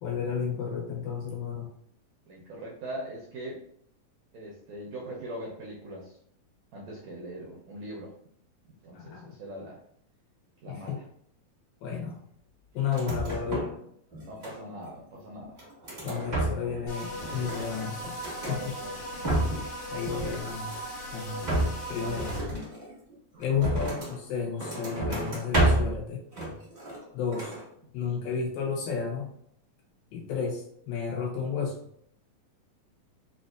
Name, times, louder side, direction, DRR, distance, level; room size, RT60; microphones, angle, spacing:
voice 1, 0.0-1.7 8.9-9.3 10.7-11.0 11.8-12.2 12.7-13.7 16.0-18.2 18.5-18.6 19.9-20.7 21.1-21.4 21.9-22.3 23.4-26.2 27.1-27.5 27.9-29.3 30.1-31.8, left 6 dB, 80° left, -2 dB, 2.9 m, -32 dB
voice 2, 2.3-3.6 4.3-6.2 6.7-8.1 8.8-9.8 10.6-11.0 13.0-13.6 14.3-15.6 18.4-19.0 22.0-22.4 23.3-23.9 27.8-28.3, right 1 dB, 80° right, -4 dB, 1.6 m, -41 dB
sound 1, 12.9-13.8 14.1-14.9 15.4-16.8 17.1-18.6 19.0-19.7 20.0-21.0 21.4-24.2 24.6-26.0 26.3-27.1 27.3-27.6, right 1 dB, 40° right, 0.7 m, -30 dB
sound 2, 16.9-22.4, equal, 65° left, 2.7 m, -38 dB
5.9 x 2.6 x 2.4 m, 0.68 s
omnidirectional pair, 4.1 m